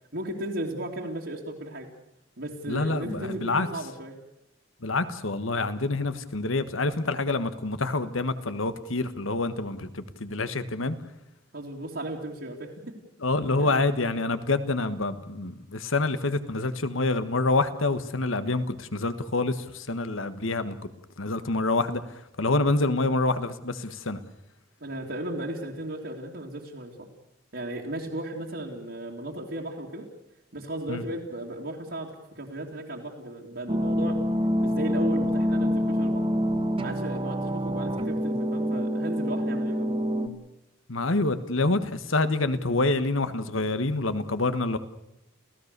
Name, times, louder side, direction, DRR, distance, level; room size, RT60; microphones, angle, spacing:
voice 1, 0.1-1.9 2.4-4.1 11.5-13.0 13.6-13.7 24.8-27.1 27.5-30.1 30.5-34.2 34.6-36.2 36.8-40.1, right 1 dB, 60° right, -4 dB, 2.7 m, -35 dB
voice 2, 2.7-3.7 4.8-11.0 13.2-20.8 21.2-22.0 22.4-24.2 30.9-31.0 40.9-44.8, left 2 dB, 85° left, 12 dB, 1.5 m, -27 dB
sound 1, 33.7-40.3, equal, 25° right, 1.5 m, -26 dB
29.0 x 16.5 x 6.8 m, 0.86 s
head